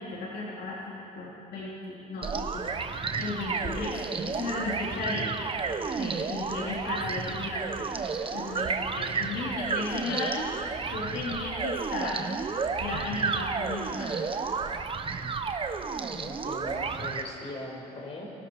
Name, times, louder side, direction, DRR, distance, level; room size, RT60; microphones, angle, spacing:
voice 1, 0.0-5.4 5.9-10.5 10.9-12.2 12.8-14.1, left 3 dB, 65° left, -5 dB, 4.1 m, -35 dB
sound 1, 2.2-17.2, right 5 dB, 30° right, 1.3 m, -32 dB
voice 2, 16.1-18.2, left 2 dB, 35° left, -1 dB, 6.4 m, -40 dB
30.0 x 24.5 x 5.1 m, 3.0 s
cardioid pair, 110°, 17 cm